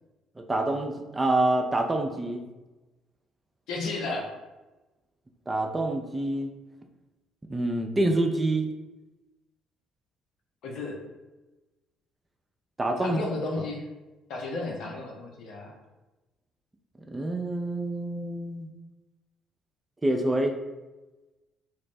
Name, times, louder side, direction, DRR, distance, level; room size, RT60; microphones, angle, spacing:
voice 1, 0.4-2.5 5.5-6.5 7.5-8.7 12.8-13.2 17.1-18.7 20.0-20.5, right 2 dB, 20° right, 4 dB, 0.4 m, -27 dB
voice 2, 3.7-4.3 10.6-11.0 13.0-13.9 14.3-15.7, left 3 dB, 60° left, 0 dB, 0.7 m, -33 dB
3.0 x 2.1 x 4.1 m, 1.1 s
figure-of-eight pair, 50°, 0 cm